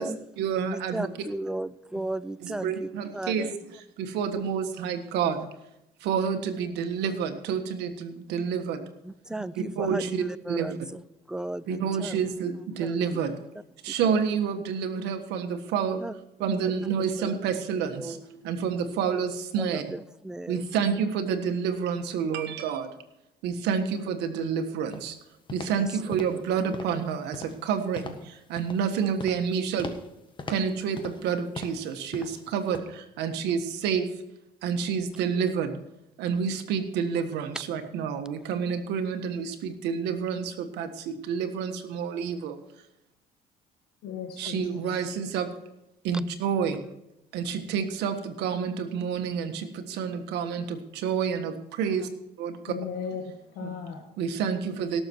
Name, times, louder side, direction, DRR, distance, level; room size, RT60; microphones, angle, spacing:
voice 1, 0.0-1.1 2.4-3.6 4.0-5.5 6.0-8.8 9.6-10.8 11.7-13.3 13.8-16.0 16.4-19.9 20.5-22.9 23.4-25.2 25.5-29.9 30.5-34.1 34.6-35.8 36.2-42.6 44.4-45.5 46.0-46.8 47.3-52.1 52.4-52.7 53.6-53.7 54.2-55.0, right 7 dB, 85° right, 7 dB, 1.5 m, -29 dB
voice 2, 0.7-3.5 9.0-11.0 11.3-13.2 13.9-14.2 16.0-16.1 16.5-16.9 17.2-17.4 17.8-18.2 19.6-20.6 25.8-26.4, right 1 dB, 5° right, 16 dB, 0.4 m, -36 dB
sound 1, 24.9-25.1 25.5-25.8 26.1-26.5 26.7-27.0 27.3-27.7 28.0-28.3 28.6-28.9 29.2-29.5 29.8-30.1 30.4-31.3 31.6-31.9 32.1-32.4 32.7-32.8, left 3 dB, 30° left, 1.5 m, -40 dB
voice 3, 44.0-45.1 52.7-54.0, left 7 dB, 90° left, 2 dB, 1.9 m, -37 dB
17.5 x 7.0 x 4.6 m, 0.86 s
cardioid pair, 110°, 17 cm